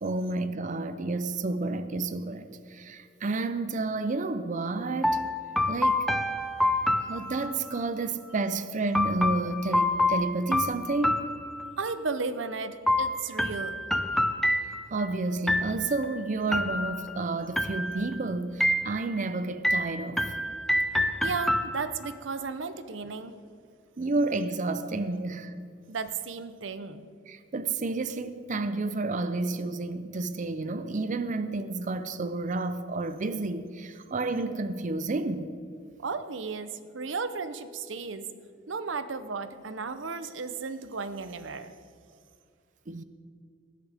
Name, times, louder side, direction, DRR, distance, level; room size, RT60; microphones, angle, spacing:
voice 1, 0.0-5.2 5.7-6.1 7.1-11.3 14.9-20.2 24.0-25.5 27.3-35.5 42.9-43.0, right 3 dB, 40° right, 0.5 m, -30 dB
sound 1, 5.0-7.8 8.9-12.0 12.9-15.1 15.5-16.1 16.5-17.2 17.6-18.2 18.6-19.3 19.6-22.1, left 1 dB, ahead, 0.6 m, -27 dB
voice 2, 11.8-13.8 21.2-23.4 25.9-27.1 36.0-38.3 38.7-41.7, right 4 dB, 75° right, 0.7 m, -34 dB
19.0 x 13.0 x 3.5 m
head